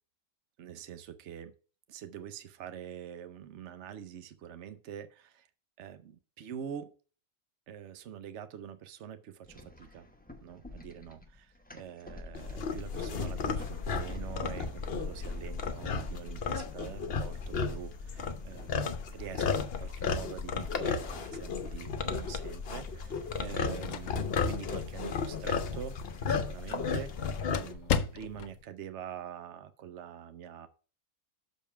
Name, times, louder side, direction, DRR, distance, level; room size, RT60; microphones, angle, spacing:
voice 1, 0.6-1.5 1.9-5.5 5.8-6.9 7.7-10.1 10.4-30.7, right 9 dB, 65° right, 11 dB, 1.1 m, -45 dB
sound 1, 9.4-27.5, left 2 dB, 10° left, 0.9 m, -47 dB
sound 2, 12.3-27.7, left 5 dB, 55° left, 0.9 m, -34 dB
sound 3, 23.4-28.6, left 7 dB, 75° left, 1.1 m, -38 dB
6.6 x 5.3 x 5.7 m, 0.37 s
omnidirectional pair, 1.4 m